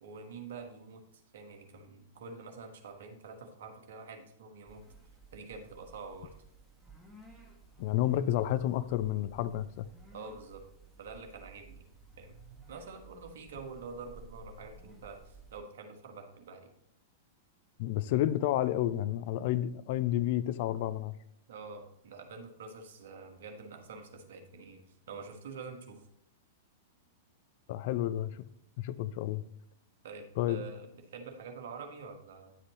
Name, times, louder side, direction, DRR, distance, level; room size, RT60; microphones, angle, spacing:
voice 1, 0.0-4.8 5.3-6.3 10.1-10.6 11.0-12.3 12.7-16.7 21.5-26.0 30.0-32.6, right 4 dB, 60° right, 4 dB, 1.4 m, -47 dB
sound 1, 4.7-15.6, right 3 dB, 5° right, 1.6 m, -55 dB
voice 2, 7.8-9.9 17.8-21.1 27.7-28.4 28.8-29.4 30.4-30.6, left 13 dB, 50° left, 14 dB, 0.4 m, -30 dB
10.0 x 7.4 x 3.0 m, 0.74 s
figure-of-eight pair, 100°, 0 cm